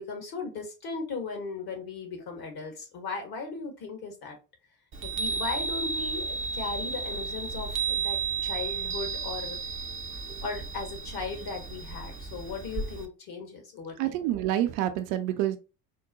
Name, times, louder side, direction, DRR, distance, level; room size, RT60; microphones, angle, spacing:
voice 1, 0.0-4.4 5.0-9.6 10.4-14.3, left 4 dB, 50° left, 1.6 m, -37 dB
Chime, 4.9-13.1, right 5 dB, 25° right, 0.6 m, -33 dB
voice 2, 14.0-15.6, right 12 dB, 65° right, 0.7 m, -27 dB
4.4 x 2.2 x 2.8 m
hypercardioid pair, 65°, 49 cm